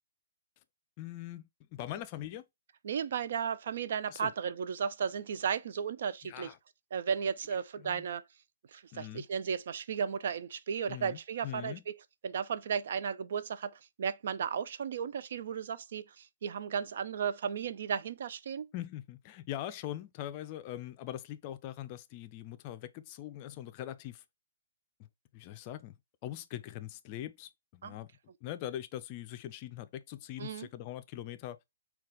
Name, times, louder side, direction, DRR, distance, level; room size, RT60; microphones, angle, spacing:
voice 1, 1.0-1.4 1.7-2.4 4.1-4.3 6.2-6.6 7.8-8.1 8.9-9.2 10.9-11.8 18.7-24.2 25.3-26.0 26.2-28.1 28.4-31.6, left 12 dB, 35° left, 0.4 m, -42 dB
voice 2, 2.8-6.5 6.9-8.2 8.7-12.0 12.2-18.7 27.8-28.0 30.4-30.7, right 7 dB, 60° right, 0.4 m, -35 dB
4.0 x 2.3 x 3.7 m
figure-of-eight pair, 130°, 0 cm